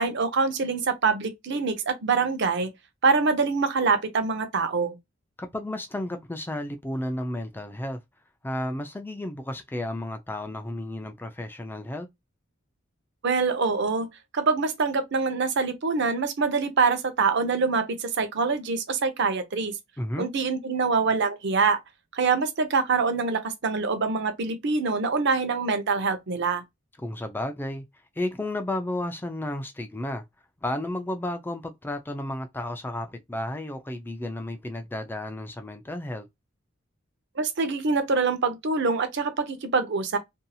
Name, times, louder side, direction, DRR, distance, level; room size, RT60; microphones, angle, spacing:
voice 1, 0.0-2.7 3.0-5.0 13.2-14.1 14.3-19.8 20.2-21.8 22.1-26.6 37.4-40.2, right 4 dB, 60° right, 0.7 m, -25 dB
voice 2, 5.4-8.0 8.4-12.1 20.0-20.3 27.0-27.9 28.2-30.2 30.6-36.3, left 1 dB, 10° left, 0.4 m, -32 dB
2.7 x 2.6 x 2.3 m
head